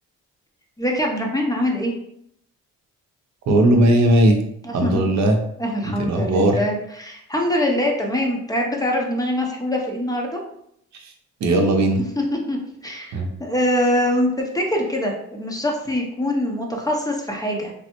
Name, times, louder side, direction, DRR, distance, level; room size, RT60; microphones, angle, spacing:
voice 1, 0.8-1.9 4.6-5.1 5.6-10.4 12.2-12.6 12.8-13.1 13.4-17.7, left 1 dB, 10° left, 0 dB, 0.6 m, -23 dB
voice 2, 3.5-4.4 4.7-5.4 5.8-6.6 11.0-11.1 11.4-12.0 13.1-13.3, right 1 dB, 65° right, 3 dB, 0.6 m, -17 dB
3.4 x 2.0 x 2.9 m, 0.72 s
cardioid pair, 90°, 30 cm